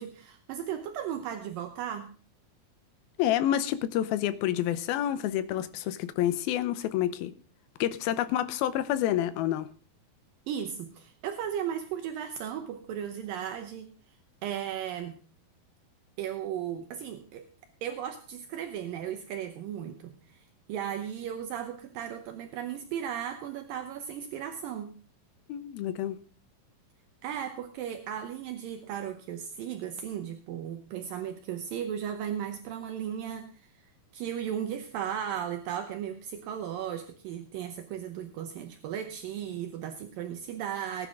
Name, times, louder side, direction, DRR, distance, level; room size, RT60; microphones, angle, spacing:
voice 1, 0.0-2.1 10.5-13.9 14.4-15.2 16.2-17.4 17.8-24.9 27.2-41.1, right 9 dB, 75° right, 2.5 m, -36 dB
voice 2, 3.2-7.3 7.8-9.7 25.5-26.2, left 12 dB, 85° left, 2.7 m, -28 dB
19.5 x 10.0 x 3.7 m
omnidirectional pair, 4.3 m